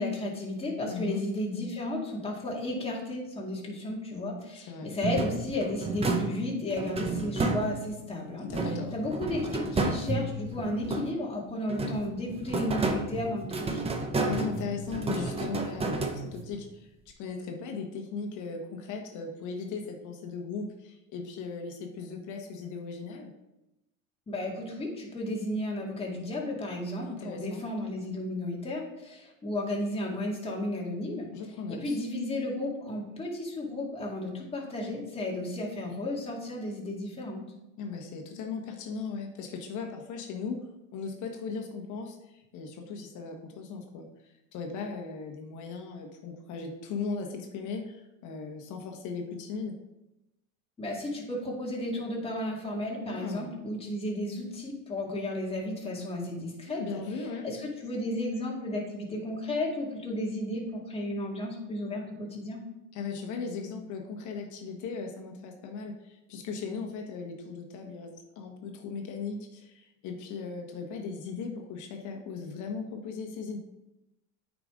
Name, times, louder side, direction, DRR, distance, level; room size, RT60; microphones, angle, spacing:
voice 1, 0.0-8.5 8.9-13.9 24.3-31.3 31.7-37.4 50.8-57.0 57.4-62.6, left 1 dB, 15° left, -2 dB, 2.0 m, -33 dB
voice 2, 0.9-1.2 4.5-4.9 8.4-9.0 14.2-23.3 27.0-27.7 31.3-32.0 37.8-40.6 40.9-49.7 53.0-53.5 56.7-57.5 62.9-73.6, left 5 dB, 45° left, 3 dB, 1.3 m, -38 dB
sound 1, 5.0-8.1 8.5-11.3 11.7-16.6, right 3 dB, 15° right, 0.8 m, -31 dB
8.9 x 5.1 x 3.7 m, 0.93 s
supercardioid pair, 130°, 40 cm